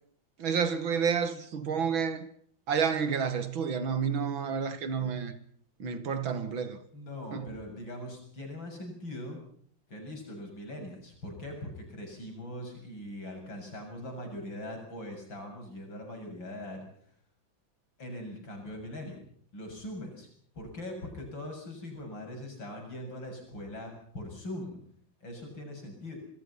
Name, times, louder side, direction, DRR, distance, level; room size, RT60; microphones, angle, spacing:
voice 1, 0.4-2.3 2.7-5.4 5.8-6.8 7.3-7.5, right 6 dB, 85° right, 2.8 m, -30 dB
voice 2, 6.9-9.4 9.9-16.8 18.0-19.2 19.5-20.3 20.5-24.8 25.2-26.2, left 1 dB, 75° left, 8.3 m, -41 dB
27.0 x 22.0 x 5.8 m
omnidirectional pair, 2.1 m